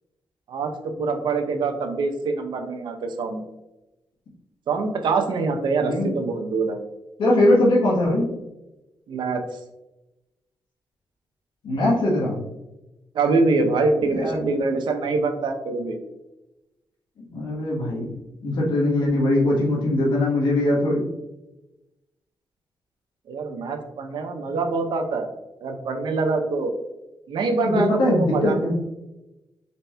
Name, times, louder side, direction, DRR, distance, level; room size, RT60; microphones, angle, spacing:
voice 1, 0.5-3.5 4.7-6.8 9.1-9.4 13.1-16.0 23.3-25.3 25.6-26.7 27.3-28.6, right 3 dB, 75° right, 5 dB, 0.6 m, -24 dB
voice 2, 7.2-8.3 11.6-12.4 14.1-14.5 17.3-18.1 18.4-21.0 27.6-28.7, left 1 dB, 75° left, -4 dB, 1.1 m, -21 dB
4.1 x 4.1 x 2.2 m, 0.97 s
cardioid pair, 85°, 8 cm